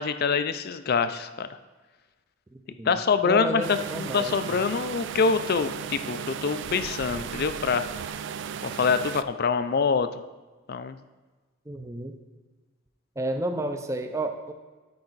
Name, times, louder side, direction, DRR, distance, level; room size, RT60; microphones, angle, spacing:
voice 1, 0.0-1.6 2.8-7.8 8.6-10.1 10.7-11.0, left 5 dB, 50° left, 11 dB, 0.4 m, -25 dB
voice 2, 3.2-4.6 11.7-12.2 13.2-14.5, right 1 dB, 15° right, 7 dB, 0.6 m, -31 dB
sound 1, 3.6-9.2, right 7 dB, 60° right, 0.3 m, -35 dB
13.0 x 4.8 x 4.0 m, 1.3 s
head